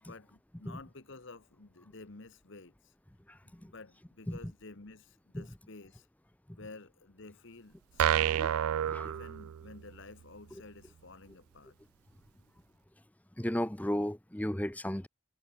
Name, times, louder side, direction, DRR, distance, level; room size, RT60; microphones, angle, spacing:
voice 1, 0.0-2.9 3.4-6.1 6.6-8.5 9.0-11.8, left 3 dB, 55° left, 1.2 m, -51 dB
voice 2, 3.3-3.7 4.3-4.4 5.3-5.4 8.4-8.5 8.9-9.1 13.4-15.1, left 1 dB, 5° left, 0.7 m, -34 dB
sound 1, 8.0-9.9, right 10 dB, 80° right, 0.3 m, -29 dB
head